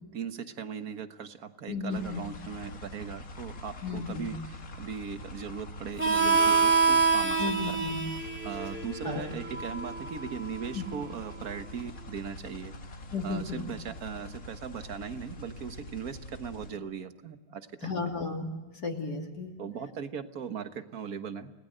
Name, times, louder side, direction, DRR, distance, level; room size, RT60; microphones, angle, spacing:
voice 1, 0.1-7.8 8.5-12.8 13.2-18.0 19.6-21.5, right 7 dB, 55° right, 9 dB, 1.7 m, -39 dB
voice 2, 1.7-2.3 3.8-4.3 7.4-8.0 9.0-9.3 10.7-10.8 13.1-13.6 17.8-18.5 18.8-19.5, left 4 dB, 65° left, 1 dB, 3.2 m, -34 dB
sound 1, 1.9-16.7, left 1 dB, 50° left, 2.2 m, -45 dB
Harmonica, 6.0-11.3, right 5 dB, 5° right, 2.4 m, -27 dB
30.0 x 19.5 x 7.8 m, 1.2 s
omnidirectional pair, 1.9 m